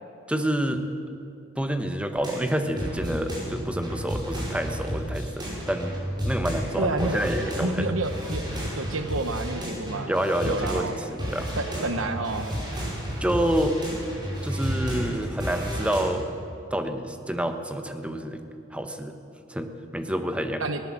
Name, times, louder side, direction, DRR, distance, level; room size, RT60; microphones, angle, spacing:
voice 1, 0.3-0.8 1.6-6.0 6.2-8.0 10.1-11.5 13.2-13.8 14.4-16.3 16.7-18.4 18.7-19.1 19.5-20.6, right 1 dB, 5° right, 7 dB, 1.1 m, -28 dB
sound 1, 2.2-10.9 11.2-16.0, equal, 20° right, 5.3 m, -32 dB
voice 2, 6.8-7.2 7.6-8.4 8.7-10.1 10.4-11.0 11.6-12.5 20.6-20.8, right 3 dB, 75° right, 7 dB, 1.1 m, -29 dB
19.0 x 18.0 x 7.6 m, 2.7 s
head